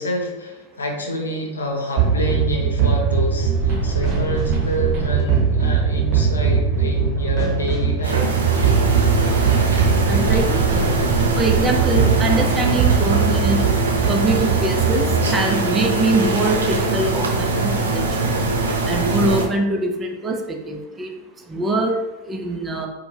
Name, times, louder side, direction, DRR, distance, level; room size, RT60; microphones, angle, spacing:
voice 1, 0.0-8.2, left 1 dB, 70° left, 1 dB, 0.7 m, -27 dB
sound 1, 2.0-15.3, right 6 dB, 35° right, 1.1 m, -20 dB
sound 2, 8.0-19.4, right 3 dB, 70° right, 0.6 m, -22 dB
voice 2, 10.1-10.6 11.4-13.6 14.1-15.0 15.3-18.4 18.9-21.1 21.5-22.0 22.3-22.9, right 2 dB, 20° right, 2 dB, 0.5 m, -23 dB
4.3 x 2.1 x 3.3 m, 1.1 s
figure-of-eight pair, 90°, 0 cm